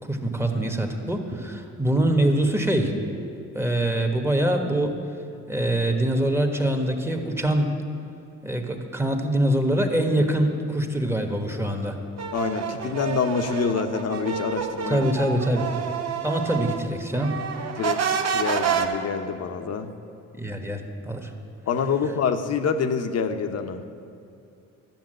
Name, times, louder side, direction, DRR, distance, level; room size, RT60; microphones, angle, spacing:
voice 1, 0.1-2.9 3.5-4.9 5.5-7.7 8.4-12.0 14.9-15.7 16.2-17.4 20.4-20.8 21.0-21.3, right 1 dB, 10° right, 3 dB, 1.3 m, -24 dB
sound 1, 12.2-16.8 17.1-18.9, right 7 dB, 60° right, 1.1 m, -28 dB
voice 2, 12.3-15.1 17.8-19.9 21.7-23.8, left 6 dB, 55° left, 8 dB, 0.9 m, -26 dB
12.0 x 7.1 x 7.7 m, 2.5 s
cardioid pair, 90°, 30 cm